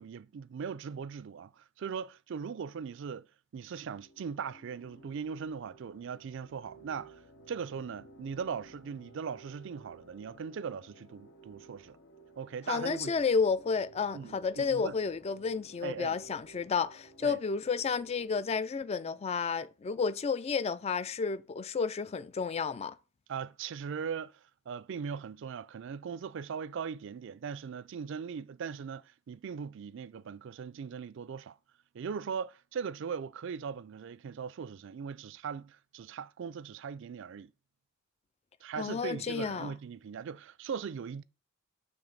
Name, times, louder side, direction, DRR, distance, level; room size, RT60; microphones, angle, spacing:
voice 1, 0.0-3.3 3.5-7.2 7.5-12.0 12.4-13.1 14.1-15.0 15.8-16.2 17.2-17.4 23.3-24.4 24.7-31.6 31.9-37.5 38.6-41.2, right 6 dB, 65° right, 0.4 m, -39 dB
sound 1, 3.8-18.4, right 2 dB, 60° left, 0.9 m, -56 dB
voice 2, 12.7-22.9 38.8-39.7, left 5 dB, 30° left, 0.3 m, -31 dB
6.9 x 3.4 x 5.3 m
head